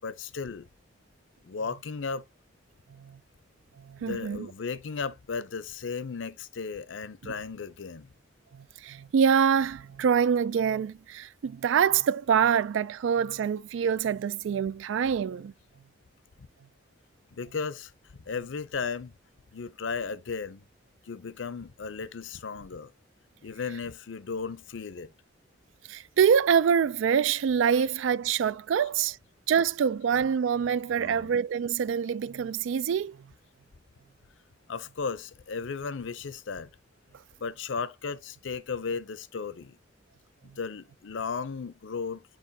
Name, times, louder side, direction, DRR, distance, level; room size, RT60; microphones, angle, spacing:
voice 1, 0.0-0.7 1.4-2.2 4.0-8.1 16.4-16.5 17.3-19.2 19.5-20.6 21.1-22.9 23.4-25.1 27.8-27.9 28.8-28.9 31.0-31.3 34.7-36.7 37.4-39.8 40.6-42.2, left 5 dB, 80° left, 0.6 m, -35 dB
voice 2, 3.8-4.5 7.2-7.3 8.5-15.5 25.9-29.2 29.5-33.3, right 7 dB, 85° right, 0.3 m, -25 dB
7.7 x 4.6 x 2.7 m
head